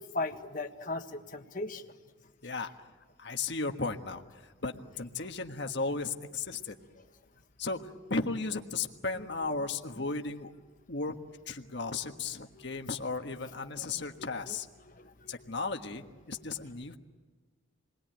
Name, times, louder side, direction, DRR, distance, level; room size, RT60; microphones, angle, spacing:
voice 1, 0.1-1.9 15.0-15.3, left 2 dB, 40° left, 5 dB, 1.6 m, -37 dB
voice 2, 3.2-4.2 4.6-6.8 7.6-10.5 10.9-11.1 11.5-14.7 15.3-17.0, left 3 dB, 60° left, 5 dB, 1.5 m, -35 dB
28.5 x 21.0 x 9.1 m, 1.4 s
head